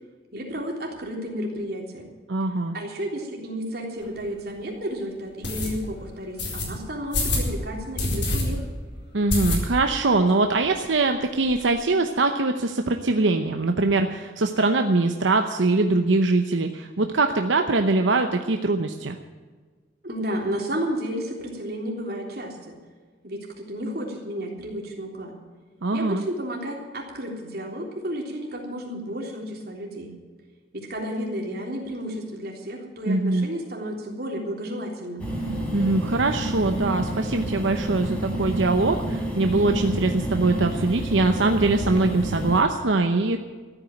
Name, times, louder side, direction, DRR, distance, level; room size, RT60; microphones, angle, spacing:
voice 1, 0.3-2.1 2.7-8.6 20.0-22.8 23.2-25.4 25.9-30.1 30.7-35.3, equal, 55° right, 0 dB, 3.5 m, -32 dB
voice 2, 2.3-2.7 9.1-19.2 25.8-26.2 33.1-33.4 35.7-43.4, right 3 dB, 90° right, 5 dB, 0.9 m, -22 dB
sound 1, 4.0-4.1 4.6-4.7 5.4-5.7 6.4-6.7 7.1-7.5 8.0-8.4 8.7-8.8 9.3-9.9 10.3-10.4 10.6-10.7 11.0-11.6, left 2 dB, 75° left, 4.3 m, -26 dB
sound 2, 35.2-42.6, right 1 dB, 5° left, 4.0 m, -29 dB
14.0 x 9.0 x 9.1 m, 1.5 s
head